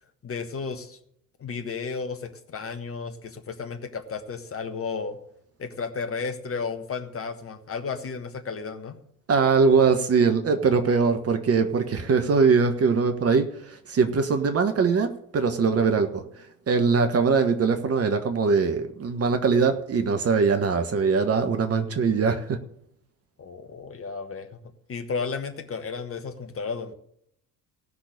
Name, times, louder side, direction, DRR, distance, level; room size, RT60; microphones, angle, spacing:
voice 1, 0.2-1.0 1.4-5.2 5.6-9.0 23.4-24.6 24.9-26.9, left 5 dB, 30° left, 7 dB, 1.4 m, -33 dB
voice 2, 9.3-22.6, right 5 dB, 30° right, 7 dB, 1.3 m, -22 dB
17.0 x 6.1 x 6.5 m, 0.70 s
figure-of-eight pair, 60°, 46 cm